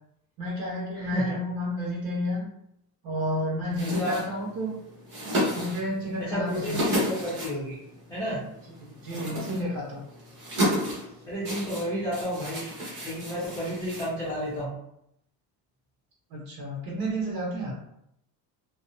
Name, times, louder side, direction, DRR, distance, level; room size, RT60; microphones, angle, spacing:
voice 1, 0.4-2.5 3.0-4.8 5.5-6.9 8.9-10.0 16.3-17.8, equal, 65° right, -5 dB, 0.9 m, -31 dB
voice 2, 0.9-1.4 3.8-4.1 6.3-7.8 8.1-8.4 11.3-12.6 13.0-14.8, equal, 10° left, -11 dB, 0.6 m, -31 dB
sound 1, 3.7-14.6, equal, 30° right, 0.9 m, -33 dB
2.5 x 2.1 x 2.5 m, 0.76 s
cardioid pair, 170°, 40 cm